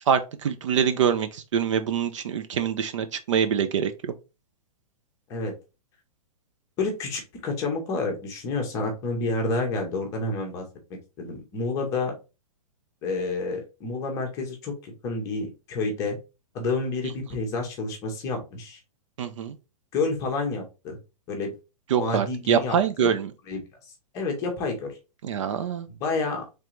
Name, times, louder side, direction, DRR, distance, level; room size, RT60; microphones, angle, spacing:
voice 1, 0.1-4.1 19.2-19.5 21.9-23.3 25.2-25.9, right 8 dB, 55° right, 0.5 m, -25 dB
voice 2, 6.8-10.6 11.2-12.1 13.0-16.2 16.5-18.8 19.9-21.0 21.3-21.5 22.0-23.1 23.5-23.6 24.1-25.0 25.9-26.4, left 3 dB, 15° left, 0.7 m, -29 dB
3.7 x 3.3 x 3.0 m
hypercardioid pair, 170°, 19 cm